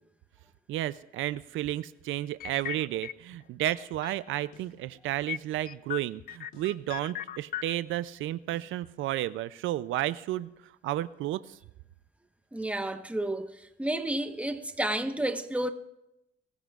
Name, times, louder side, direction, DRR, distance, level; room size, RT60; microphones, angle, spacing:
voice 1, 0.7-10.5 10.8-11.4, right 14 dB, 85° right, 0.5 m, -32 dB
sound 1, 2.4-3.4 3.6-4.4 4.7-4.8 5.3-7.7, left 11 dB, 50° left, 0.4 m, -37 dB
sound 2, 2.5-2.8 4.5-4.8 6.5-6.8 8.5-8.8, left 4 dB, 85° left, 4.7 m, -57 dB
voice 2, 12.5-15.7, right 1 dB, 5° right, 1.2 m, -31 dB
22.0 x 14.5 x 2.4 m
cardioid pair, 90°, 20 cm